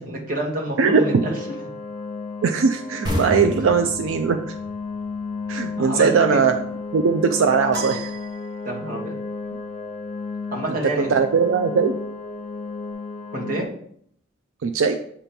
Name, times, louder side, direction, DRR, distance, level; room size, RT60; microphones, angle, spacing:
voice 1, 0.0-1.4 1.6-1.7 5.8-6.4 8.6-9.2 10.5-11.2 13.3-13.7, right 1 dB, 45° right, -2 dB, 1.5 m, -28 dB
sound 1, 0.9-13.6, left 4 dB, 35° left, 0.4 m, -33 dB
voice 2, 2.4-4.5 5.5-6.6 6.9-8.1 10.7-11.9 14.6-15.0, right 5 dB, 85° right, 6 dB, 0.4 m, -20 dB
sound 2, 3.0-6.4, equal, 20° right, 1.1 m, -31 dB
sound 3, 7.7-9.1, right 3 dB, 60° right, 1.2 m, -35 dB
7.0 x 2.9 x 5.1 m, 0.65 s
head